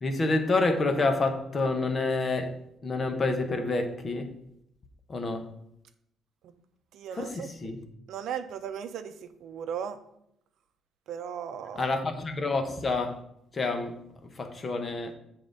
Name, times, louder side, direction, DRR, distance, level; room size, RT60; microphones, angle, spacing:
voice 1, 0.0-4.4 5.1-5.5 7.1-7.8 11.8-13.2 13.5-14.0 14.3-15.1, left 3 dB, 25° left, 0.8 m, -28 dB
voice 2, 6.9-7.5 8.1-10.0 11.1-11.9, right 8 dB, 65° right, 0.6 m, -37 dB
7.4 x 3.7 x 6.5 m
cardioid pair, 175°, 0 cm